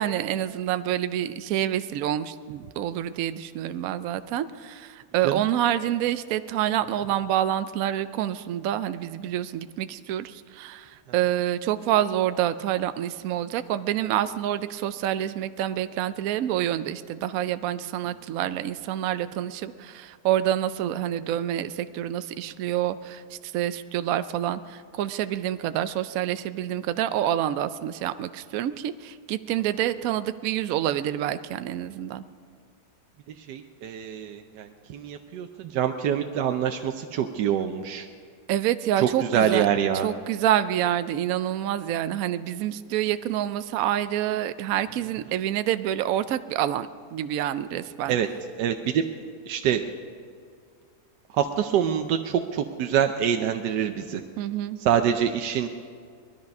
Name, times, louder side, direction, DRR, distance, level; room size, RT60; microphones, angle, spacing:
voice 1, 0.0-32.2 38.5-39.7 40.0-48.2 54.4-54.8, right 11 dB, 70° right, 12 dB, 0.9 m, -27 dB
voice 2, 33.5-38.1 39.0-40.1 48.1-48.3 48.6-49.0 49.5-49.8 51.4-54.2 54.8-55.7, right 9 dB, 85° right, 5 dB, 1.3 m, -25 dB
20.0 x 13.0 x 5.3 m, 2.1 s
omnidirectional pair, 1.8 m